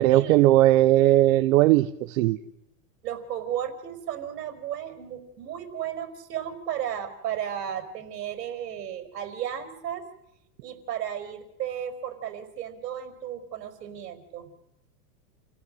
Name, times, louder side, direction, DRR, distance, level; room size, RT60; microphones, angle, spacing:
voice 1, 0.0-2.4, right 15 dB, 55° right, 12 dB, 1.0 m, -18 dB
voice 2, 3.0-10.0 10.6-14.5, right 10 dB, 70° right, 9 dB, 5.1 m, -34 dB
29.5 x 16.5 x 7.8 m, 0.84 s
supercardioid pair, 150°, 49 cm